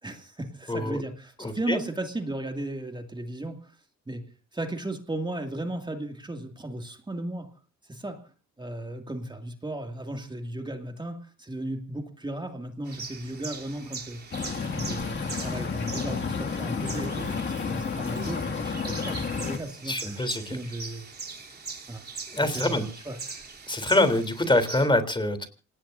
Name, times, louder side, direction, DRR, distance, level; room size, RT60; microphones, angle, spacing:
voice 1, 0.0-3.7 4.1-4.2 4.5-7.5 7.9-8.2 8.6-14.2 14.7-21.1 21.9-22.0 22.4-23.4, right 1 dB, 15° right, 5 dB, 2.4 m, -35 dB
voice 2, 0.7-1.0 1.4-1.8 19.8-20.6 22.3-22.8 23.7-25.5, left 2 dB, 15° left, 10 dB, 3.5 m, -25 dB
sound 1, 12.9-24.9, right 4 dB, 35° right, 3.7 m, -41 dB
sound 2, 14.3-19.6, left 5 dB, 40° left, 2.3 m, -31 dB
27.5 x 19.0 x 2.7 m, 0.36 s
cardioid pair, 90°, 30 cm